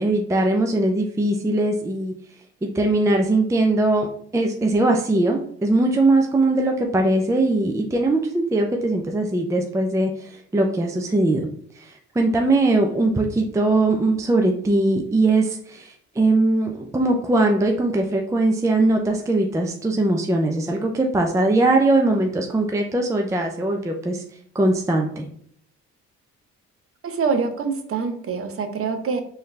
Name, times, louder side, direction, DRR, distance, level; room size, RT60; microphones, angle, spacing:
voice 1, 0.0-2.1 2.6-4.1 4.3-11.5 11.7-24.2 24.5-25.3, right 2 dB, 10° right, 2 dB, 0.4 m, -20 dB
voice 2, 27.0-29.2, right 5 dB, 50° right, 6 dB, 0.7 m, -25 dB
3.8 x 2.8 x 3.2 m, 0.63 s
cardioid pair, 90°, 30 cm